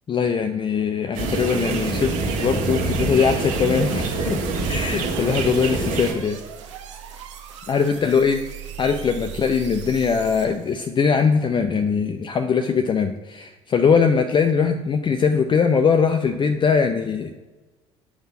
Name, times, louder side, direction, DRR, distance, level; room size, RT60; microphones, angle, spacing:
voice 1, 0.1-4.4 4.7-6.4 7.7-8.4 8.8-17.3, left 6 dB, 30° left, 7 dB, 0.5 m, -21 dB
sound 1, 1.1-6.1, right 3 dB, 65° right, 1.5 m, -25 dB
sound 2, 1.7-10.8, right 5 dB, 80° right, 0.9 m, -36 dB
7.8 x 3.6 x 5.8 m, 1.2 s
hypercardioid pair, 60°, 15 cm